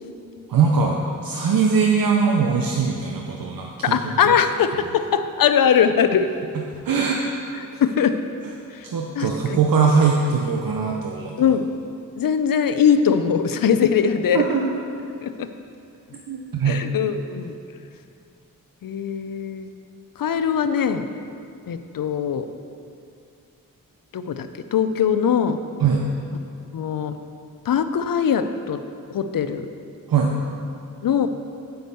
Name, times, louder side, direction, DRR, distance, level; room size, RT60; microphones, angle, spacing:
voice 1, 0.5-4.0 4.3-4.4 6.8-7.2 8.8-11.4 14.3-14.6 16.3-16.8 25.8-26.0 30.1-30.3, right 5 dB, 80° right, 0 dB, 0.7 m, -21 dB
voice 2, 3.8-6.4 7.5-8.2 8.7-8.9 9.2-9.6 11.4-11.7 12.2-14.4 15.2-15.5 16.6-17.5 18.8-19.7 20.2-21.1 21.7-22.5 24.1-25.6 26.7-27.2 27.7-28.8 29.1-29.7 31.0-31.3, left 7 dB, 75° left, 10 dB, 0.6 m, -21 dB
8.0 x 5.3 x 6.7 m, 2.5 s
cardioid pair, 50°, 34 cm